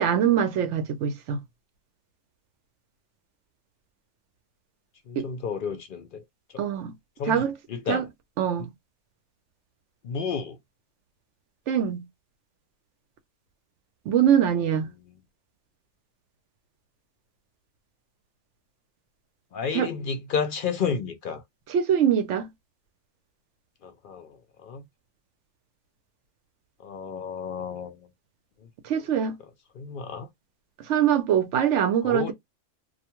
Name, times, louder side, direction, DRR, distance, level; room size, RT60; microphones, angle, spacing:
voice 1, 0.0-1.4 5.2-5.3 6.6-6.9 7.3-7.6 7.9-8.0 8.4-8.7 11.7-12.0 14.1-14.9 19.7-19.9 21.7-22.5 28.8-29.4 30.9-32.3, right 9 dB, 70° right, 0.9 m, -23 dB
voice 2, 5.1-6.2 7.2-8.1 8.6-8.7 10.0-10.6 19.5-21.4 23.8-24.8 26.8-28.0 29.8-30.3 32.0-32.3, left 6 dB, 65° left, 0.5 m, -31 dB
2.4 x 2.2 x 2.8 m
omnidirectional pair, 1.3 m